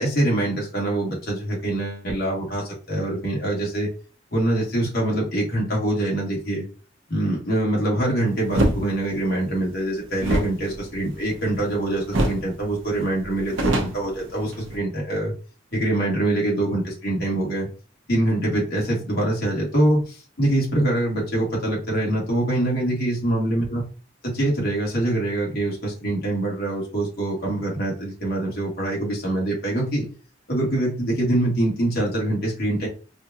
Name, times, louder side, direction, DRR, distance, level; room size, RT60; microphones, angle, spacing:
voice 1, 0.0-3.9 4.3-6.7 7.1-15.3 15.7-17.7 18.1-23.8 24.3-30.1 30.5-32.9, right 1 dB, 55° left, -3 dB, 2.1 m, -24 dB
sound 1, 8.5-8.8 10.2-11.7 12.1-12.5 12.8-12.9 13.2-14.8, right 1 dB, 85° right, 0.9 m, -24 dB
4.8 x 2.4 x 2.9 m, 0.36 s
head